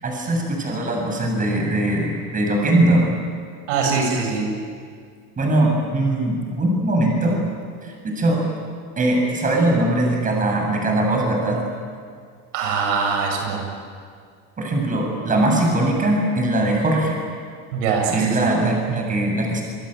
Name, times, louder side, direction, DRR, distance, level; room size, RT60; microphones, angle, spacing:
voice 1, 0.0-3.1 5.4-7.4 7.8-8.4 9.0-11.6 14.6-17.2 18.1-19.6, right 1 dB, 20° right, 1 dB, 7.6 m, -20 dB
voice 2, 3.7-4.5 12.5-13.6 17.7-18.5, right 5 dB, 85° right, 2 dB, 7.4 m, -22 dB
28.5 x 22.5 x 9.2 m, 2.1 s
supercardioid pair, 135°, 36 cm